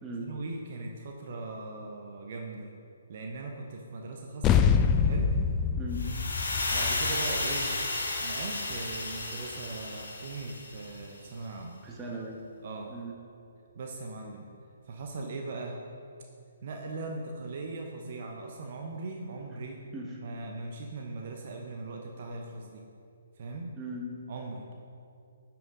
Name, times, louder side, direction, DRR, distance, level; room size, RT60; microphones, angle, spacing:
voice 1, 0.2-2.7 3.1-4.7 5.0-5.3 6.5-7.8 8.2-11.8 12.6-13.0 13.7-14.4 14.9-15.8 16.6-19.8 20.2-22.8 23.4-23.7 24.3-24.7, right 3 dB, 45° right, 2 dB, 0.8 m, -39 dB
sound 1, 4.4-9.2, left 6 dB, 20° left, 0.3 m, -27 dB
voice 2, 5.8-6.1 11.8-12.4 12.9-13.2 19.9-20.2 23.8-24.1, right 1 dB, 15° right, -2 dB, 1.2 m, -38 dB
sound 2, 5.9-11.0, left 2 dB, 65° left, 1.5 m, -33 dB
10.5 x 5.9 x 3.7 m, 2.4 s
figure-of-eight pair, 130°, 0 cm